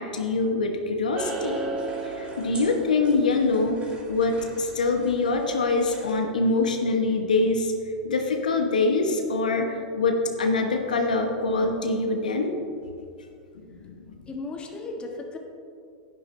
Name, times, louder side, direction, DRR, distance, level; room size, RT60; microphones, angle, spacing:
voice 1, 0.0-1.6 2.0-7.7 8.0-12.5 13.5-14.1, left 3 dB, 85° left, 4 dB, 1.0 m, -24 dB
sound 1, 1.1-6.2, right 2 dB, 25° right, 2.2 m, -36 dB
voice 2, 14.3-15.4, left 3 dB, 25° left, 2 dB, 1.5 m, -35 dB
10.5 x 10.5 x 3.3 m, 2.4 s
hypercardioid pair, 100°, 4 cm